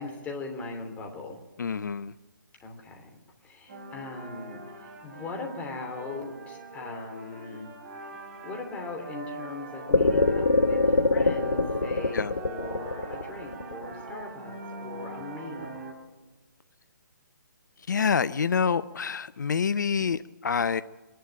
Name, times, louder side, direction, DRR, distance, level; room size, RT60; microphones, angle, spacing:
voice 1, 0.0-1.4 2.6-3.2 3.4-7.7 8.4-15.8, left 3 dB, 15° left, 2 dB, 2.9 m, -39 dB
voice 2, 1.6-2.1 12.1-12.3 17.9-20.8, left 6 dB, 65° left, 15 dB, 0.6 m, -27 dB
sound 1, 3.7-15.9, right 2 dB, 45° right, 4.2 m, -42 dB
sound 2, 9.9-14.1, left 3 dB, 80° left, 1.2 m, -23 dB
23.5 x 11.0 x 10.0 m, 1.2 s
figure-of-eight pair, 140°, 10 cm